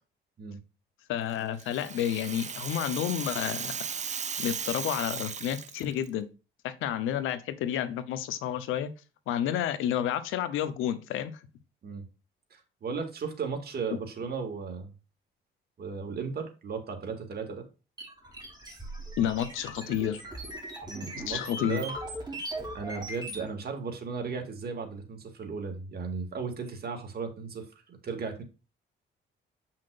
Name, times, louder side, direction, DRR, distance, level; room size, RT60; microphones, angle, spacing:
voice 1, 1.1-3.7 4.4-6.3 6.6-8.9 9.3-11.4 19.2-20.2 21.3-21.8, left 10 dB, 90° left, 0.8 m, -30 dB
Rattle (instrument), 1.3-6.1, right 6 dB, 35° right, 0.7 m, -36 dB
voice 2, 12.8-14.9 15.8-17.7 20.9-21.9 22.3-22.4 22.7-28.4, right 5 dB, 50° right, 2.1 m, -36 dB
sound 1, 18.0-23.5, right 1 dB, 20° right, 3.1 m, -39 dB
7.6 x 5.8 x 2.5 m
cardioid pair, 90°, 20 cm